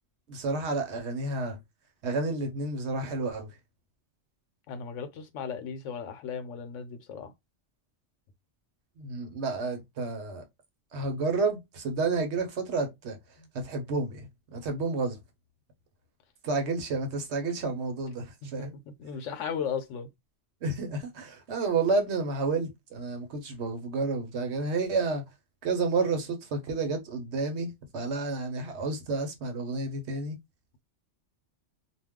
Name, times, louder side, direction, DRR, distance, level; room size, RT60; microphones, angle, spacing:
voice 1, 0.3-1.6 2.0-3.5 9.0-10.4 10.9-13.2 13.5-15.2 16.4-18.7 20.6-25.2 25.6-30.4, right 3 dB, 65° right, 1.0 m, -30 dB
voice 2, 4.7-7.3 13.4-13.5 18.4-18.7 19.0-20.1, left 6 dB, 80° left, 1.0 m, -36 dB
2.4 x 2.2 x 3.5 m
omnidirectional pair, 1.3 m